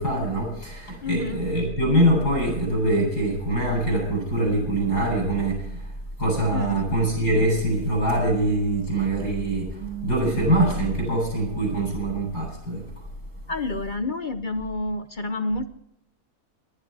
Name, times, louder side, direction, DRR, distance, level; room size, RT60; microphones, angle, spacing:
voice 1, 0.0-5.9 6.2-12.8, right 1 dB, 80° left, 1 dB, 8.4 m, -23 dB
voice 2, 1.0-1.5 6.5-6.8 13.5-15.7, left 2 dB, 40° left, 9 dB, 0.8 m, -29 dB
20.0 x 11.5 x 4.8 m, 0.74 s
omnidirectional pair, 1.7 m